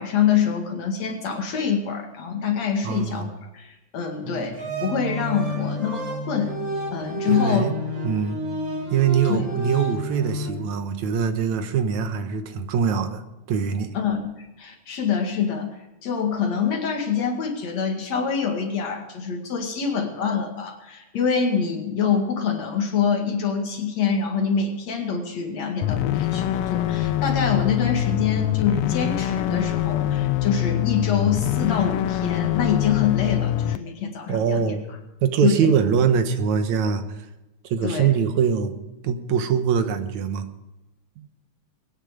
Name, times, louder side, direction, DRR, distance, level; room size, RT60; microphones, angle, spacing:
voice 1, 0.0-6.6 6.9-7.7 9.3-9.5 13.9-15.8 16.0-34.7 35.4-35.7 37.8-38.1, left 6 dB, 65° left, 2 dB, 3.3 m, -25 dB
voice 2, 2.8-3.3 7.3-7.7 8.0-8.4 8.9-13.2 13.5-13.9 34.3-34.9 35.2-37.2 37.6-38.8 39.0-40.5 41.2-41.3, right 7 dB, 75° right, 9 dB, 2.5 m, -23 dB
sound 1, 4.2-10.5, equal, 40° right, 5.7 m, -30 dB
sound 2, 25.8-33.8, left 12 dB, 85° left, 1.2 m, -24 dB
22.5 x 9.9 x 5.1 m, 1.0 s
omnidirectional pair, 3.3 m